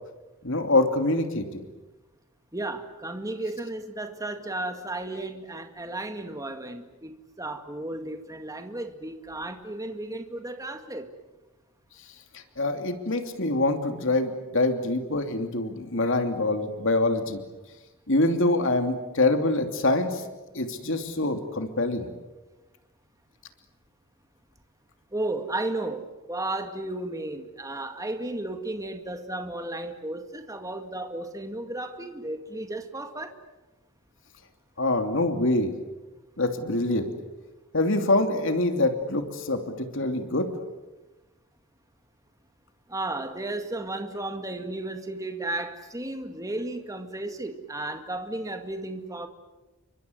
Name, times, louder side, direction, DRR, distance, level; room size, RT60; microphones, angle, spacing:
voice 1, 0.4-1.4 12.6-17.4 18.1-20.2 20.5-22.1 34.8-35.7 36.4-37.1 37.7-40.5, left 2 dB, 60° left, 2.9 m, -25 dB
voice 2, 2.5-11.1 25.1-33.3 42.9-49.3, right 2 dB, 15° right, 2.1 m, -34 dB
29.5 x 24.5 x 8.1 m
head